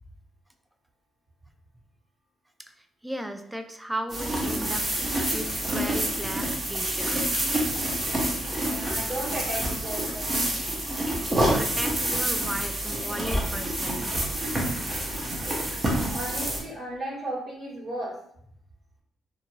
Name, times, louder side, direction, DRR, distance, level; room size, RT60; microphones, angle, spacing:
voice 1, 2.6-7.4 11.4-14.2, right 1 dB, 5° right, 7 dB, 0.3 m, -36 dB
sound 1, 4.1-16.6, right 1 dB, 30° right, 0.8 m, -27 dB
voice 2, 8.6-10.4 16.1-18.1, right 1 dB, 50° right, -6 dB, 1.4 m, -35 dB
2.6 x 2.5 x 3.0 m, 0.69 s
cardioid pair, 90°, 0 cm